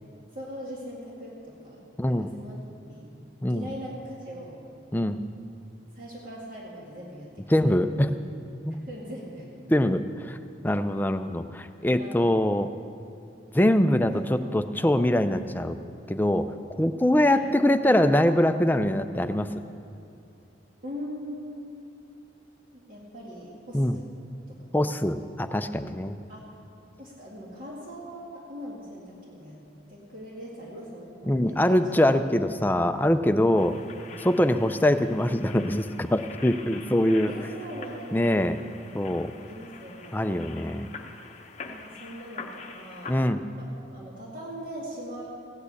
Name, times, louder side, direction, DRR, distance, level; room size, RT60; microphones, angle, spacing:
voice 1, 0.3-2.5 2.8-3.1 3.5-4.6 5.9-7.8 8.9-9.5 12.0-12.3 14.1-14.3 17.3-17.5 20.8-21.7 22.7-24.1 24.5-24.6 26.3-26.5 27.0-29.6 29.9-32.1 37.2-38.4 39.4-40.4 41.6-43.3 43.5-45.3, equal, 45° right, -5 dB, 2.2 m, -41 dB
voice 2, 2.0-2.3 3.4-3.7 4.9-5.2 7.5-8.1 8.6-8.8 9.7-10.4 10.6-12.7 13.5-15.8 16.1-16.5 16.8-19.5 23.7-24.0 24.7-26.2 31.3-33.8 34.2-37.3 38.1-38.6 38.9-39.3 40.1-40.9 43.1-43.4, left 1 dB, 10° left, 8 dB, 0.4 m, -23 dB
sound 1, 33.6-43.3, left 4 dB, 35° left, 0.8 m, -45 dB
16.0 x 8.7 x 8.2 m, 2.6 s
head